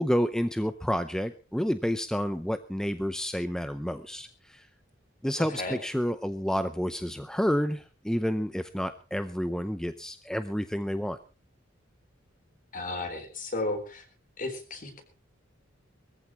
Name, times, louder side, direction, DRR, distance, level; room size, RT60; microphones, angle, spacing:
voice 1, 0.0-4.7 5.2-11.2, equal, 5° left, 10 dB, 0.6 m, -29 dB
voice 2, 5.4-5.8 12.7-14.0 14.4-15.0, left 2 dB, 45° left, 6 dB, 4.0 m, -34 dB
21.5 x 14.5 x 3.0 m, 0.33 s
head